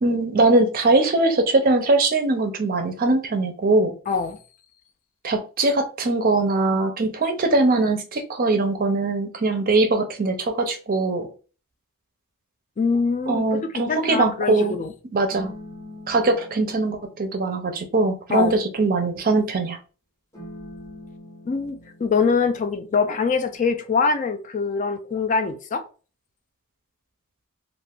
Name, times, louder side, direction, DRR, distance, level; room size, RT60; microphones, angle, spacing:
voice 1, 0.0-3.9 5.2-11.3 13.3-14.8 15.1-15.5 16.1-19.8, right 2 dB, 40° right, 0.5 m, -21 dB
voice 2, 4.1-4.4 12.8-14.9 18.3-18.6 21.5-25.8, left 5 dB, 35° left, 0.3 m, -24 dB
sound 1, 13.2-14.2 15.3-19.3 20.3-23.5, left 1 dB, 15° left, 0.7 m, -45 dB
2.4 x 2.4 x 3.4 m
head